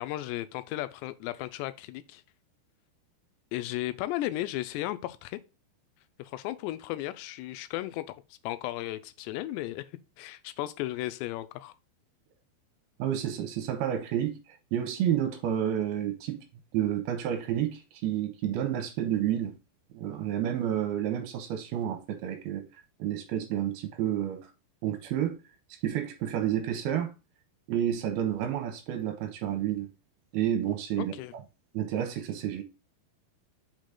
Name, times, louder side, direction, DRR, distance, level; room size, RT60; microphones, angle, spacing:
voice 1, 0.0-2.2 3.5-5.4 6.2-8.2 8.4-9.8 10.2-11.7 31.0-31.3, left 15 dB, 85° left, 2.8 m, -35 dB
voice 2, 13.0-16.4 16.7-19.5 19.9-22.7 23.0-24.5 24.8-25.4 25.8-27.1 27.7-29.9 30.3-31.1 31.7-32.6, right 10 dB, 75° right, 2.7 m, -30 dB
6.1 x 5.2 x 3.8 m
omnidirectional pair, 4.9 m